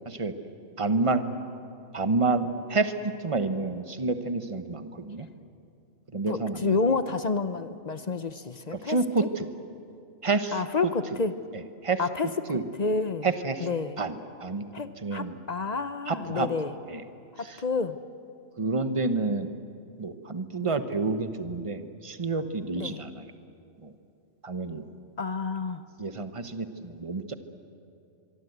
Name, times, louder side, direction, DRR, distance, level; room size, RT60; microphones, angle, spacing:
voice 1, 0.8-1.2 1.9-5.3 6.1-7.0 8.7-9.5 10.2-10.9 11.5-12.0 12.5-12.7 13.2-13.7 14.0-14.6 15.0-15.4 16.1-16.5 16.9-17.0 17.4-17.6 18.6-19.5 20.0-23.3 23.8-23.9 24.4-24.8 26.0-27.3, right 3 dB, 25° right, 10 dB, 1.0 m, -29 dB
voice 2, 6.3-9.0 10.5-11.3 12.0-12.3 12.8-13.3 13.6-14.0 14.7-16.7 17.6-18.0 20.6-20.8 22.8-23.0 25.2-25.8, left 4 dB, 40° left, 12 dB, 0.6 m, -29 dB
24.0 x 23.5 x 8.1 m, 2.6 s
omnidirectional pair, 1.4 m